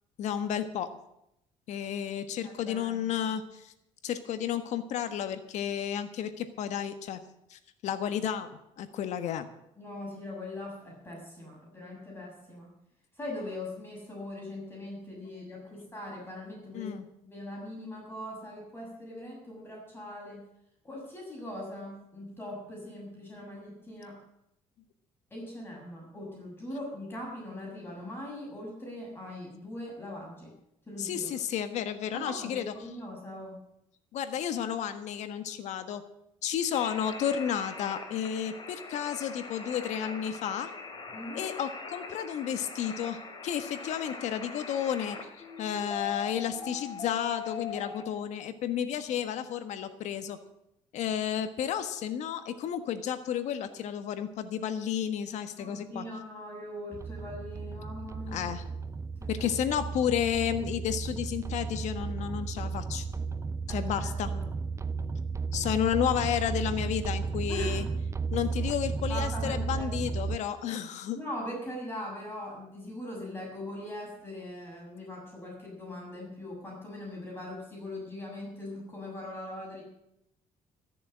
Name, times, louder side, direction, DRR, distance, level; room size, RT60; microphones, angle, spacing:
voice 1, 0.2-0.9 1.7-3.7 4.0-7.2 7.5-8.5 8.8-9.5 16.7-17.0 31.0-32.7 34.1-36.0 36.4-40.7 41.3-45.2 45.6-50.4 50.9-56.0 58.3-58.6 59.3-63.0 63.7-64.3 65.5-67.9 68.3-71.2, left 9 dB, 70° left, 10 dB, 1.4 m, -32 dB
voice 2, 2.4-3.0 9.8-12.7 13.2-17.0 17.2-20.4 20.8-24.2 25.3-30.5 30.9-31.3 32.1-33.6 41.1-41.5 55.6-58.5 59.2-59.5 63.7-64.4 67.5-67.9 69.1-70.4 71.1-79.8, left 1 dB, 20° left, -2 dB, 7.0 m, -41 dB
sound 1, 36.7-48.0, left 5 dB, 35° left, 2.8 m, -42 dB
sound 2, 56.9-70.4, right 4 dB, 25° right, 0.6 m, -34 dB
14.0 x 6.9 x 9.8 m, 0.81 s
cardioid pair, 95°, 12 cm